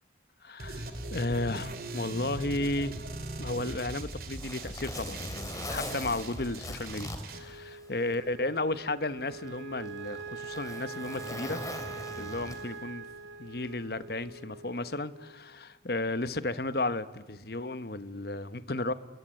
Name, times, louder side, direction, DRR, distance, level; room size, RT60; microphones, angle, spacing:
voice 1, 0.4-3.0 3.4-5.2 5.7-11.6 12.2-13.1 13.4-18.9, left 2 dB, 55° left, 13 dB, 1.1 m, -33 dB
sound 1, 0.6-7.4, right 2 dB, 50° right, 3.1 m, -40 dB
Zipper (clothing), 3.7-8.2 8.6-8.7 9.5-12.9 14.1-14.3, left 1 dB, 20° left, 3.1 m, -41 dB
Wind instrument woodwind instrument, 7.3-15.8, right 5 dB, 85° right, 1.6 m, -44 dB
29.0 x 22.0 x 9.0 m, 1.2 s
head